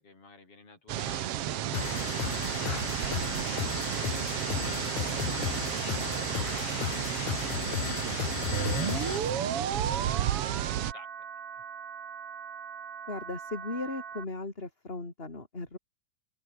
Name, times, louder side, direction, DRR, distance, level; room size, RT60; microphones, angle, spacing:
voice 1, 0.0-11.3 11.5-11.6, left 3 dB, 40° left, 6.4 m, -56 dB
sound 1, 0.9-10.9, right 12 dB, 65° right, 1.6 m, -32 dB
sound 2, 1.7-9.3, left 18 dB, 85° left, 1.6 m, -35 dB
sound 3, 8.5-14.2, right 7 dB, 45° right, 3.1 m, -36 dB
voice 2, 13.1-15.8, left 2 dB, 15° left, 3.5 m, -37 dB
open air
omnidirectional pair, 4.0 m